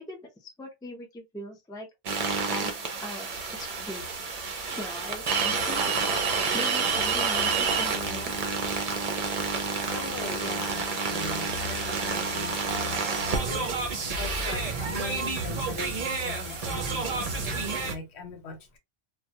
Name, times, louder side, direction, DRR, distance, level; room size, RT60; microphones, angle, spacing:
voice 1, 0.0-1.9 2.5-2.7 3.0-4.3 4.7-8.3, left 1 dB, 5° left, 0.4 m, -41 dB
sound 1, 2.1-17.9, right 4 dB, 45° right, 0.5 m, -29 dB
sound 2, 3.3-17.7, left 4 dB, 50° left, 0.7 m, -43 dB
voice 2, 9.9-18.8, left 4 dB, 85° left, 1.0 m, -41 dB
2.2 x 2.2 x 2.7 m
omnidirectional pair, 1.1 m